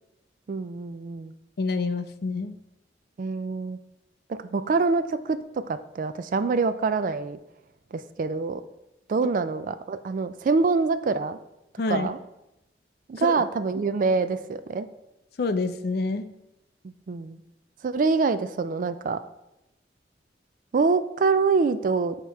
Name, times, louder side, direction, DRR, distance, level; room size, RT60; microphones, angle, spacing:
voice 1, 0.5-1.3 3.2-3.8 4.3-7.4 7.9-8.6 9.1-11.4 11.9-12.2 13.1-14.9 16.8-17.4 17.8-19.2 20.7-22.2, right 4 dB, 45° right, 11 dB, 0.3 m, -25 dB
voice 2, 1.6-2.6 11.8-12.1 13.2-13.3 15.4-16.3, left 3 dB, 60° left, 9 dB, 0.4 m, -27 dB
8.3 x 3.0 x 4.5 m, 0.92 s
head